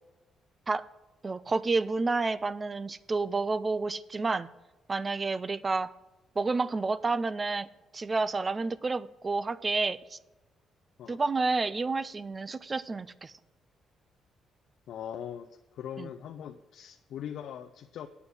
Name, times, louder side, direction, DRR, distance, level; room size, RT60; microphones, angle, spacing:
voice 1, 1.2-4.5 4.9-5.9 6.4-7.7 7.9-10.2 11.1-13.3 16.0-16.1, right 3 dB, 30° right, 17 dB, 0.4 m, -30 dB
voice 2, 14.9-18.1, left 9 dB, 75° left, 7 dB, 0.5 m, -41 dB
9.6 x 7.0 x 6.3 m, 1.1 s
cardioid pair, 90°, 0 cm